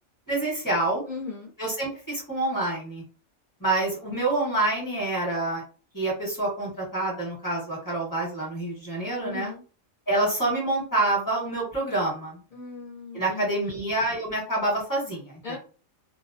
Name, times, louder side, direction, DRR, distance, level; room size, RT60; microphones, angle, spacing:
voice 1, 0.3-1.0 1.6-3.0 3.6-5.6 5.9-9.5 10.1-12.4 13.1-15.6, right 2 dB, 15° left, -4 dB, 1.0 m, -27 dB
voice 2, 1.1-1.5 9.2-9.6 12.5-13.8 15.4-15.6, left 4 dB, 45° left, -3 dB, 0.7 m, -37 dB
2.3 x 2.1 x 2.5 m, 0.38 s
omnidirectional pair, 1.5 m